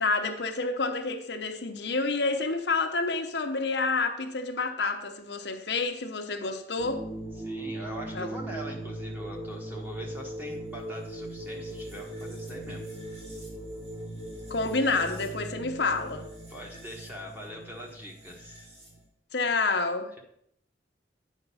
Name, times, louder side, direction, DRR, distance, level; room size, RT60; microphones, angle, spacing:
voice 1, 0.0-7.1 8.1-8.3 14.5-16.3 19.3-20.1, left 3 dB, 70° left, 0.9 m, -28 dB
sound 1, 6.8-19.1, right 1 dB, 40° right, 3.1 m, -39 dB
voice 2, 7.4-12.9 16.5-18.7, equal, 10° right, 1.4 m, -42 dB
9.0 x 5.3 x 5.5 m
head